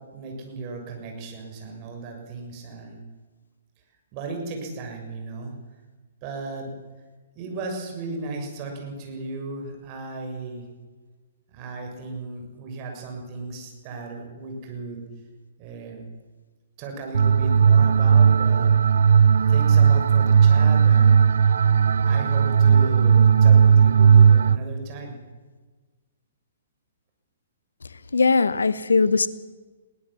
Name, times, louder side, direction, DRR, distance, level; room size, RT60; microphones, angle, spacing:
voice 1, 0.1-3.0 4.1-5.5 6.2-6.7 7.3-10.7 11.5-15.0 15.6-16.0 16.8-19.1 19.5-21.2 22.0-25.2, right 3 dB, 35° right, 2 dB, 6.7 m, -35 dB
sound 1, 17.1-24.6, right 7 dB, 65° right, 0.5 m, -16 dB
voice 2, 28.1-29.3, left 4 dB, 75° left, 16 dB, 1.1 m, -19 dB
21.5 x 17.5 x 7.6 m, 1.3 s
figure-of-eight pair, 120°, 0 cm